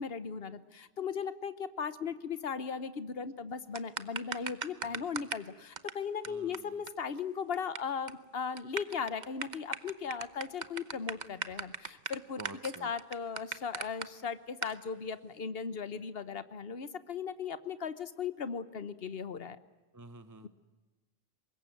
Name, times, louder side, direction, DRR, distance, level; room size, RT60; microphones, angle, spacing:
voice 1, 0.0-19.6, left 6 dB, 70° left, 13 dB, 1.4 m, -37 dB
sound 1, 3.7-5.5 5.8-5.9 6.2-6.3 6.5-6.6 6.9-7.0 7.2-7.8 8.1-8.2 8.6-14.1 14.6-14.7, right 5 dB, 45° right, 1.1 m, -38 dB
voice 2, 4.7-5.1 6.3-6.8 12.4-12.9 19.9-20.5, right 2 dB, 20° right, 11 dB, 1.1 m, -50 dB
24.5 x 21.0 x 9.2 m, 1.2 s
omnidirectional pair, 1.0 m